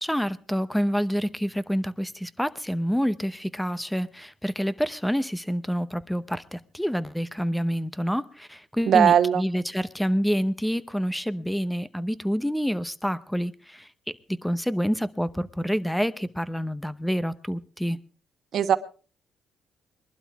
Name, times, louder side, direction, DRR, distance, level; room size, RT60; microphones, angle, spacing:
voice 1, 0.0-13.9 14.3-18.0, equal, 5° left, 16 dB, 0.8 m, -27 dB
voice 2, 8.9-9.4 18.5-18.8, right 9 dB, 65° right, 10 dB, 1.2 m, -19 dB
22.5 x 12.0 x 3.5 m, 0.36 s
cardioid pair, 90°, 0 cm